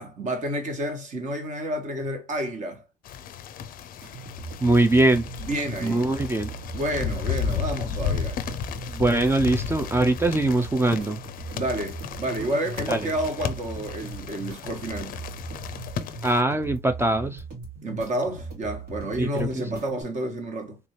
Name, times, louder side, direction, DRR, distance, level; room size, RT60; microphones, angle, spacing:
voice 1, 0.0-2.8 5.4-6.1 6.7-8.4 11.5-15.2 17.8-20.8, right 1 dB, 45° right, 1.3 m, -30 dB
sound 1, 3.0-16.4, left 7 dB, 55° left, 0.5 m, -34 dB
sound 2, 4.0-20.0, right 3 dB, 80° right, 2.2 m, -39 dB
voice 2, 4.6-5.3 5.8-6.5 8.9-11.2 12.9-13.1 16.2-17.4 19.2-19.8, right 2 dB, 15° right, 0.4 m, -22 dB
3.3 x 2.7 x 3.0 m
cardioid pair, 110°, 17 cm